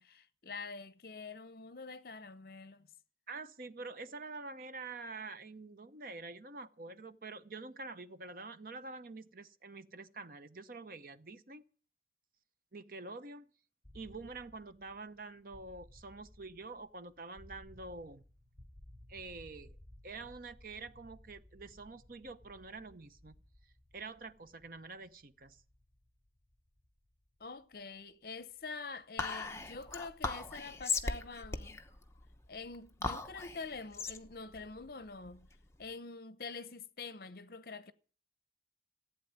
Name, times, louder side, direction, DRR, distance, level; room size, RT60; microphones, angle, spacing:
voice 1, 0.0-2.9 27.4-31.8 32.5-35.5 35.8-37.9, left 4 dB, 55° left, 0.9 m, -46 dB
voice 2, 3.3-11.7 12.7-13.5 13.9-18.2 19.1-19.8 20.0-23.4 23.9-25.6, right 3 dB, 50° right, 0.8 m, -47 dB
sound 1, 13.8-29.7, left 1 dB, 10° right, 4.3 m, -59 dB
Whispering, 29.2-35.8, left 4 dB, 15° left, 0.9 m, -39 dB
15.0 x 8.4 x 8.8 m
head